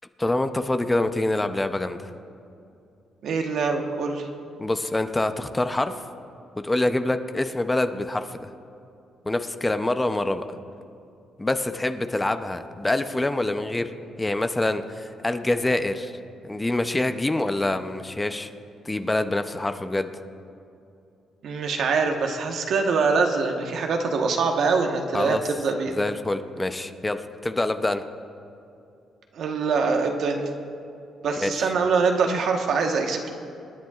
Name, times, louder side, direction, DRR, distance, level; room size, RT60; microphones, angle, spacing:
voice 1, 0.2-2.1 4.6-6.1 6.6-8.5 9.2-10.5 11.4-13.9 14.2-16.2 16.4-18.5 18.8-20.1 25.1-25.4 25.9-28.0 31.4-31.7, left 2 dB, 15° left, 8 dB, 0.6 m, -26 dB
voice 2, 3.2-4.3 21.4-26.0 29.3-30.4 31.2-33.3, right 4 dB, 65° right, 3 dB, 1.2 m, -24 dB
27.0 x 10.0 x 2.4 m, 2.6 s
cardioid pair, 90°, 0 cm